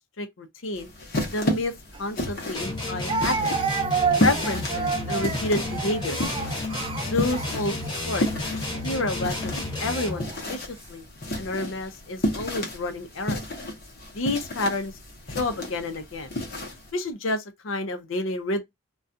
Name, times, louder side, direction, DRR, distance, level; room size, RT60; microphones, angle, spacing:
voice 1, 0.2-0.9 1.3-1.7 2.0-3.5 4.2-6.2 7.0-7.8 8.0-8.3 8.8-9.5 9.8-10.2 10.5-11.0 11.4-13.4 14.1-14.9 15.3-16.3 16.9-18.6, left 2 dB, 75° left, 0.6 m, -29 dB
sound 1, 0.7-16.9, left 1 dB, 50° left, 0.8 m, -32 dB
Speech, 1.9-2.0 3.1-8.0 8.7-9.0 9.9-10.5, right 5 dB, 25° right, 0.4 m, -29 dB
sound 2, 2.5-10.3, left 2 dB, 20° left, 1.0 m, -32 dB
2.4 x 2.2 x 2.6 m
head